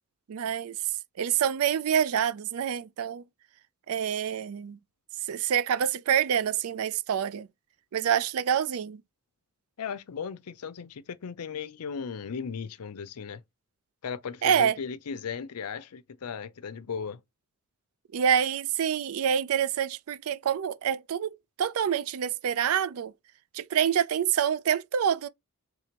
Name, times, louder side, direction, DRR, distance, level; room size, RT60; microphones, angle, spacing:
voice 1, 0.3-0.8 1.2-3.2 3.9-4.8 5.3-7.5 7.9-9.0 14.4-14.8 18.1-23.1 23.5-25.3, right 8 dB, 70° right, 0.4 m, -27 dB
voice 2, 9.8-13.4 14.0-17.2, left 6 dB, 85° left, 0.5 m, -36 dB
5.1 x 3.4 x 2.9 m
head